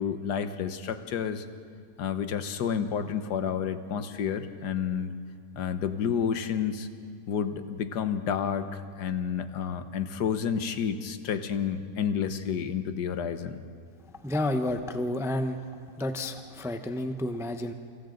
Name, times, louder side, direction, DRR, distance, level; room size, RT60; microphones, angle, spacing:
voice 1, 0.0-1.5 2.0-5.1 5.6-6.9 7.3-13.6, left 7 dB, 85° left, 9 dB, 1.6 m, -30 dB
voice 2, 14.2-15.6 16.0-17.7, left 1 dB, 5° right, 7 dB, 0.5 m, -30 dB
28.5 x 25.5 x 3.9 m, 2.1 s
omnidirectional pair, 1.7 m